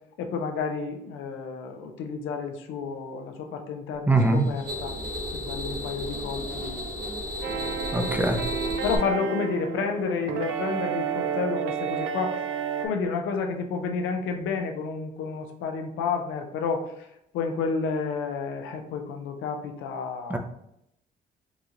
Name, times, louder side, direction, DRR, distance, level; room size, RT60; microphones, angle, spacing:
voice 1, 0.2-5.0 5.3-6.9 7.5-7.8 8.1-8.4 8.8-12.4 12.8-17.1 17.3-20.4, left 5 dB, 90° left, 4 dB, 0.5 m, -30 dB
voice 2, 4.1-4.4 7.9-8.4 20.3-20.4, right 2 dB, 10° right, 4 dB, 0.5 m, -22 dB
sound 1, 4.1-9.0, equal, 60° right, 1.0 m, -34 dB
sound 2, 7.4-12.9, right 7 dB, 90° right, 0.4 m, -31 dB
4.0 x 2.4 x 2.9 m, 0.77 s
cardioid pair, 90°, 20 cm